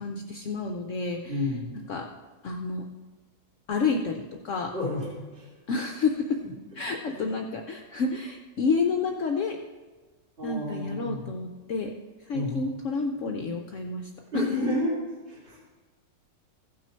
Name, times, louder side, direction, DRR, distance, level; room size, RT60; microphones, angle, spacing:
voice 1, 0.0-1.4 1.9-2.1 2.4-2.8 3.7-4.7 5.7-6.4 6.8-9.6 10.4-11.9 12.3-14.5, left 4 dB, 60° left, 3 dB, 0.9 m, -29 dB
voice 2, 1.3-1.8 4.7-5.5 6.4-6.5 7.1-7.2 10.4-11.3 12.3-12.6 14.3-14.9 15.3-15.6, left 1 dB, 35° right, -6 dB, 3.0 m, -30 dB
15.5 x 6.0 x 4.4 m, 1.3 s
omnidirectional pair, 1.8 m